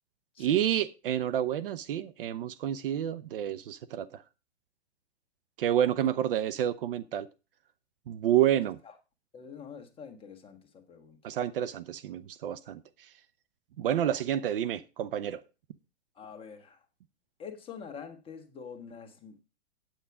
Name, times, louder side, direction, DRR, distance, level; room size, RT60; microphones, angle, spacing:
voice 1, 0.4-4.2 5.6-7.3 8.1-8.8 11.2-13.1 13.8-15.4, right 11 dB, 55° right, 0.9 m, -29 dB
voice 2, 8.6-8.9 9.3-11.2 16.1-16.8 17.4-19.4, left 6 dB, 15° left, 1.7 m, -46 dB
9.0 x 8.4 x 4.8 m
hypercardioid pair, 120°, 34 cm